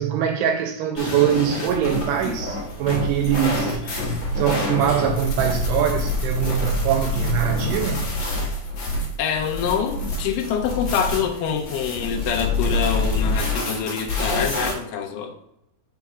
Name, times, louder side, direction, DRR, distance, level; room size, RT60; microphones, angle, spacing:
voice 1, 0.0-3.8 4.4-8.0, right 9 dB, 80° right, 3 dB, 2.4 m, -23 dB
sound 1, 1.0-14.7, left 1 dB, 50° left, 1.9 m, -26 dB
voice 2, 9.2-15.3, left 7 dB, 85° left, 2 dB, 1.9 m, -25 dB
7.3 x 6.7 x 2.4 m, 0.78 s
omnidirectional pair, 5.0 m